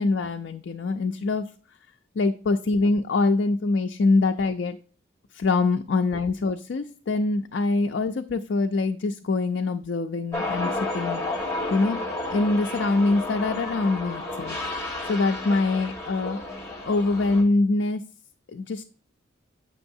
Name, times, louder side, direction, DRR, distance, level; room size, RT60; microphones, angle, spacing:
voice 1, 0.0-1.5 2.2-4.8 5.3-12.0 12.3-14.6 15.1-16.4 16.9-18.0 18.5-18.8, left 3 dB, 65° left, 4 dB, 0.4 m, -24 dB
sound 1, 10.3-17.4, left 2 dB, 15° left, 1.4 m, -32 dB
7.8 x 6.1 x 2.6 m, 0.38 s
head